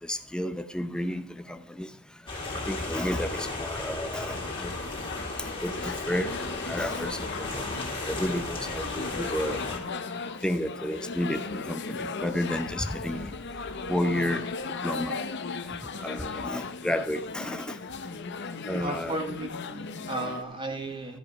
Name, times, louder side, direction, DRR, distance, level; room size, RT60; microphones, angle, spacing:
voice 1, 0.0-2.0 2.5-4.7 5.6-6.3 6.6-7.6 8.1-9.6 10.4-13.3 13.9-14.5 14.8-15.2 15.7-17.8 18.7-19.2, left 1 dB, 5° left, 9 dB, 0.6 m, -32 dB
sound 1, 2.3-9.8, left 2 dB, 25° left, 2.2 m, -34 dB
sound 2, 4.3-20.4, left 4 dB, 50° left, 0.7 m, -37 dB
voice 2, 18.8-21.2, right 2 dB, 20° right, 4 dB, 1.4 m, -34 dB
13.0 x 5.0 x 5.8 m, 0.62 s
head